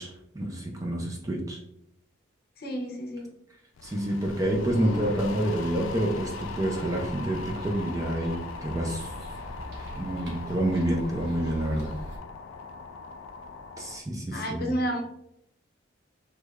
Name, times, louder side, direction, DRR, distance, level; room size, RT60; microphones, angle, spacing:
voice 1, 0.0-1.6 3.8-9.1 10.0-11.9 13.8-14.7, right 1 dB, 15° right, 0 dB, 0.4 m, -28 dB
voice 2, 2.6-3.3 14.3-15.0, equal, 50° left, 1 dB, 0.7 m, -30 dB
sound 1, 3.8-14.0, left 4 dB, 80° left, 0.3 m, -41 dB
sound 2, 4.2-12.2, equal, 60° right, 0.8 m, -42 dB
3.3 x 3.1 x 2.3 m, 0.79 s
head